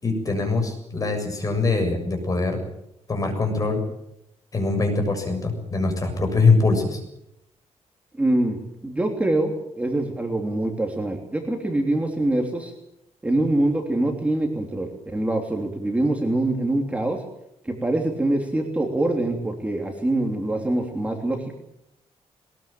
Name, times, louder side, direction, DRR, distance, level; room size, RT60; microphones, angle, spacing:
voice 1, 0.0-2.6 3.1-3.8 4.5-7.0, left 3 dB, 30° left, 5 dB, 7.3 m, -22 dB
voice 2, 8.2-12.7 13.2-17.2 17.6-21.5, right 1 dB, 10° right, 2 dB, 3.2 m, -24 dB
21.5 x 21.0 x 9.0 m, 0.80 s
wide cardioid pair, 145°, 12 cm